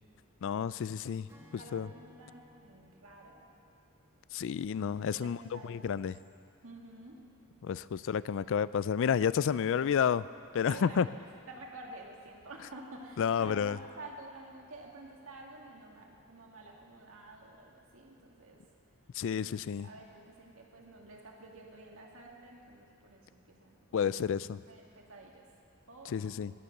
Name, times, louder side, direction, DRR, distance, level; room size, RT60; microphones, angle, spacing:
voice 1, 0.4-1.3 1.5-1.9 4.3-6.1 7.6-10.3 10.5-11.1 13.2-13.8 19.1-19.9 23.9-24.6 26.1-26.5, left 7 dB, 60° left, 17 dB, 0.3 m, -30 dB
Acoustic guitar / Strum, 1.3-4.7, left 1 dB, 15° right, 1.6 m, -60 dB
voice 2, 1.6-3.5 5.1-6.0 6.6-7.2 10.6-11.1 11.5-18.6 19.5-24.4 24.7-25.5 25.9-26.5, right 2 dB, 65° right, -1 dB, 2.3 m, -50 dB
19.0 x 9.8 x 6.6 m, 2.3 s
head